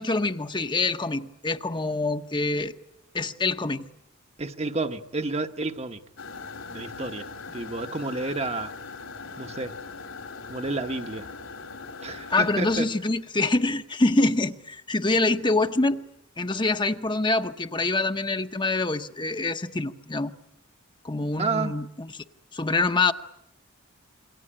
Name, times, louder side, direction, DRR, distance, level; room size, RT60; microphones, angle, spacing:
voice 1, 0.0-2.7 3.1-3.8 12.3-16.0 16.4-20.3 21.0-22.2 22.5-23.1, left 2 dB, 20° left, 1.0 m, -25 dB
voice 2, 4.4-6.0 6.7-8.7 9.4-9.8 10.5-11.3 12.0-12.8 21.4-21.8, right 3 dB, 30° right, 1.1 m, -30 dB
sound 1, 6.2-12.8, left 4 dB, 75° left, 3.4 m, -40 dB
27.5 x 23.0 x 8.8 m
head